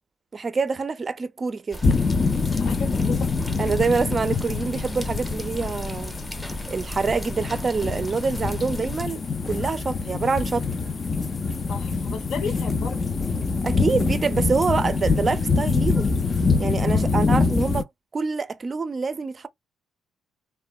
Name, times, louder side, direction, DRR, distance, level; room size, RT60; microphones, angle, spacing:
voice 1, 0.3-1.8 3.6-6.1 6.7-10.7 13.6-16.1 16.6-17.9 18.1-19.5, right 4 dB, 35° right, 0.4 m, -26 dB
sound 1, 1.7-9.1, equal, 5° left, 0.7 m, -36 dB
sound 2, 1.8-17.8, left 4 dB, 35° left, 0.3 m, -25 dB
voice 2, 2.5-3.3 11.7-13.2 16.9-17.4, left 5 dB, 75° left, 0.8 m, -35 dB
2.9 x 2.1 x 2.2 m
cardioid pair, 90°, 0 cm